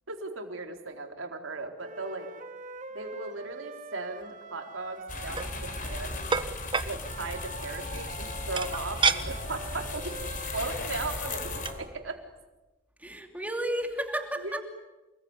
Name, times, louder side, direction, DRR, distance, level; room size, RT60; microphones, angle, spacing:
voice 1, 0.1-2.3 2.9-6.2 6.8-10.1 10.5-12.2 14.4-14.6, right 3 dB, 75° right, 4 dB, 4.0 m, -37 dB
sound 1, 1.8-6.1 7.0-11.7, right 3 dB, 40° right, 2.1 m, -45 dB
sound 2, 5.1-11.7, left 3 dB, 45° left, 4.2 m, -36 dB
sound 3, 5.1-5.5 6.3-6.9 8.6-9.2 9.7-9.8 10.2-10.4 11.4-11.5 11.6-11.8, right 5 dB, 25° right, 1.4 m, -27 dB
voice 2, 13.0-14.6, right 1 dB, 10° right, 4 dB, 2.8 m, -32 dB
28.5 x 21.0 x 9.8 m, 1.1 s
head